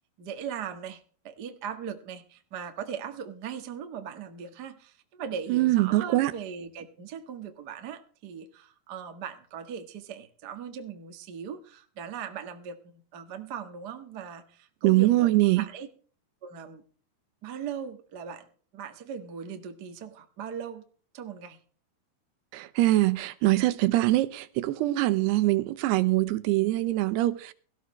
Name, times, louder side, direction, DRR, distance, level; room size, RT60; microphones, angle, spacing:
voice 1, 0.2-15.3 15.6-15.9 16.4-16.8 17.4-18.5 18.7-20.8 21.1-21.6, right 7 dB, 70° right, 0.9 m, -39 dB
voice 2, 5.5-6.3 14.8-15.6 22.5-27.5, right 17 dB, 90° right, 3.0 m, -23 dB
17.5 x 14.5 x 3.1 m
omnidirectional pair, 4.6 m